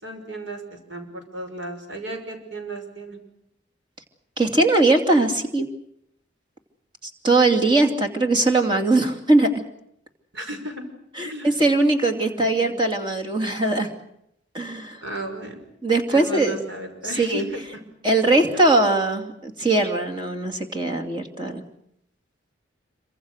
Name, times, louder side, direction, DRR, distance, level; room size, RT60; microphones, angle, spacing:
voice 1, 0.0-3.2 10.3-10.8 11.2-11.5 12.1-12.8 15.0-15.6 16.1-17.6 18.5-18.6, right 2 dB, 75° right, 5 dB, 5.9 m, -35 dB
voice 2, 4.4-5.7 7.2-9.5 11.2-13.9 14.5-15.0 15.8-16.6 17.2-17.5 18.0-21.6, right 2 dB, 25° right, 4 dB, 2.7 m, -20 dB
27.0 x 25.0 x 6.6 m, 0.76 s
head